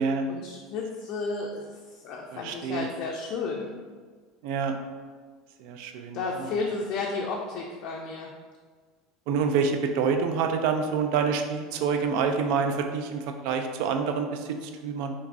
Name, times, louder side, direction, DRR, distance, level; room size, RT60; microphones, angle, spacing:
voice 1, 0.3-1.7 1.9-3.7 6.1-8.3, left 4 dB, 50° left, -1 dB, 0.4 m, -32 dB
voice 2, 2.3-2.9 4.4-4.8 5.6-6.5 9.3-15.1, right 5 dB, 65° right, 5 dB, 0.3 m, -27 dB
3.4 x 3.1 x 2.4 m, 1.5 s
supercardioid pair, 140°, 0 cm